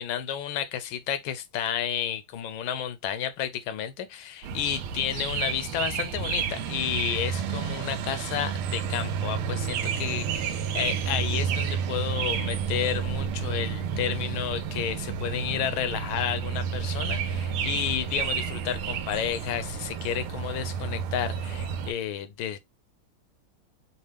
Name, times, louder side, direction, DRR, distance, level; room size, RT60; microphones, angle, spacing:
voice 1, 0.0-22.6, left 10 dB, 75° left, 1.4 m, -31 dB
sound 1, 4.4-21.9, right 7 dB, 85° right, 1.5 m, -30 dB
5.4 x 2.1 x 3.2 m
omnidirectional pair, 2.3 m